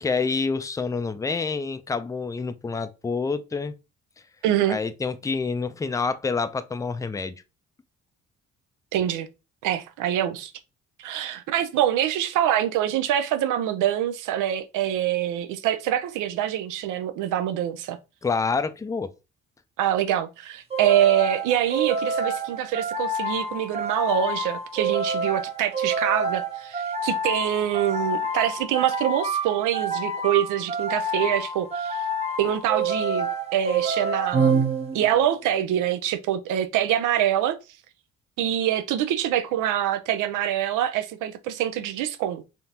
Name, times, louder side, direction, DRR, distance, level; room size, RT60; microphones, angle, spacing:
voice 1, 0.0-3.7 4.7-7.4 18.2-19.1, left 4 dB, 10° left, 0.3 m, -27 dB
voice 2, 4.4-4.8 8.9-9.3 9.6-10.5 11.0-18.0 19.8-32.0 32.4-34.6 34.9-37.6 38.4-42.4, right 11 dB, 90° right, 0.5 m, -25 dB
sound 1, 20.7-35.2, right 3 dB, 20° right, 0.7 m, -27 dB
3.5 x 2.4 x 2.8 m
cardioid pair, 90°, 30 cm